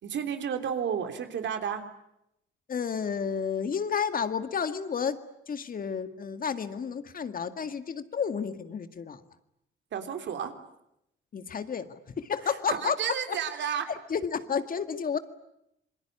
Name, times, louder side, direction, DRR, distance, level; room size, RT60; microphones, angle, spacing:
voice 1, 0.0-1.8 9.9-10.5 12.5-13.9, right 8 dB, 65° right, 7 dB, 3.5 m, -32 dB
voice 2, 2.7-5.2 5.5-9.2 11.3-13.0 13.3-13.4 13.9-15.2, left 6 dB, 45° left, 10 dB, 2.0 m, -31 dB
27.0 x 21.5 x 9.8 m, 0.80 s
cardioid pair, 90°, 20 cm